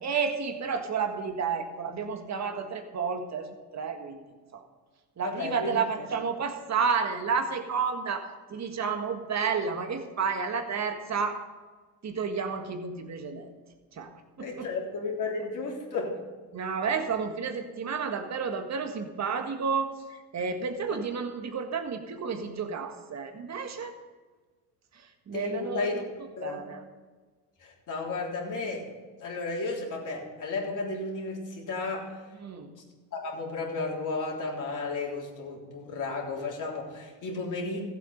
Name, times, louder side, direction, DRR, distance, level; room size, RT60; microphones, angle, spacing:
voice 1, 0.0-4.2 4.5-4.7 5.2-11.4 12.0-13.5 13.9-14.7 16.5-24.0 24.9-25.9 26.4-26.8 32.4-32.8, right 5 dB, 35° right, 6 dB, 1.7 m, -31 dB
voice 2, 5.2-6.1 14.4-16.2 25.3-25.9 26.4-26.6 27.6-28.9 29.2-32.2 33.1-37.8, left 3 dB, 40° left, -1 dB, 3.5 m, -33 dB
14.5 x 8.2 x 5.3 m, 1.4 s
supercardioid pair, 85°, 48 cm